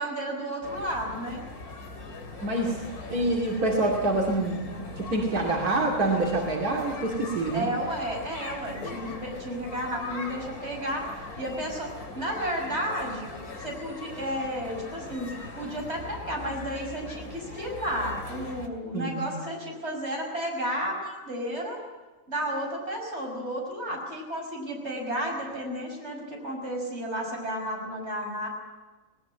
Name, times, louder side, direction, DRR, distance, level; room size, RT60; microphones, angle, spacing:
voice 1, 0.0-1.4 7.5-13.3 13.6-15.3 15.6-21.8 22.3-28.5, equal, 45° right, 0 dB, 6.1 m, -32 dB
sound 1, 0.6-18.7, left 3 dB, 80° left, 3.2 m, -41 dB
voice 2, 2.4-2.8 3.1-7.7 18.9-19.3, right 2 dB, 85° right, -1 dB, 3.1 m, -26 dB
20.0 x 19.0 x 8.8 m, 1.2 s
omnidirectional pair, 1.5 m